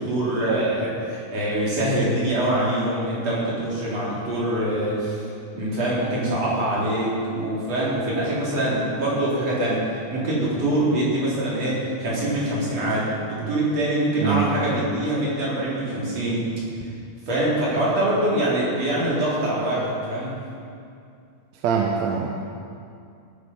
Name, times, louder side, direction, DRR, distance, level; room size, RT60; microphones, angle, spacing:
voice 1, 0.0-5.2 5.5-16.5 17.3-20.4, right 1 dB, 55° right, -7 dB, 4.8 m, -24 dB
voice 2, 14.2-14.5 21.6-22.5, right 7 dB, 70° right, 0 dB, 2.0 m, -23 dB
18.0 x 9.4 x 5.4 m, 2.4 s
omnidirectional pair, 3.6 m